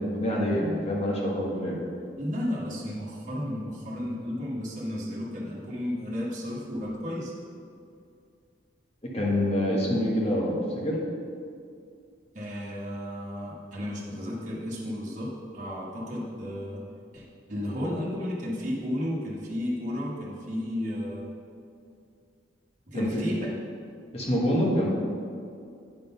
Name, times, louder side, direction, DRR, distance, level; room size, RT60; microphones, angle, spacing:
voice 1, 0.0-1.7 9.0-11.0 22.9-23.2 24.1-24.9, equal, 30° left, -3 dB, 1.3 m, -26 dB
voice 2, 2.2-7.3 12.3-16.8 17.1-21.3 22.9-23.5, left 1 dB, 40° right, -6 dB, 1.3 m, -33 dB
9.2 x 3.8 x 5.5 m, 2.4 s
head